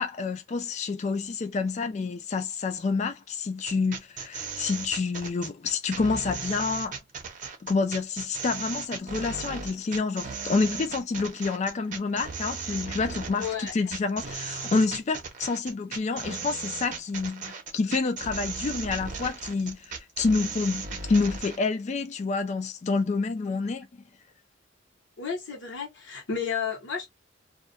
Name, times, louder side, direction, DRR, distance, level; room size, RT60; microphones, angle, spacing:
voice 1, 0.0-7.0 7.6-23.9, left 4 dB, 40° left, 0.4 m, -28 dB
sound 1, 3.6-21.6, right 5 dB, 45° right, 0.7 m, -36 dB
voice 2, 13.4-13.7 25.2-27.1, left 6 dB, 75° left, 1.0 m, -32 dB
2.3 x 2.2 x 2.5 m
head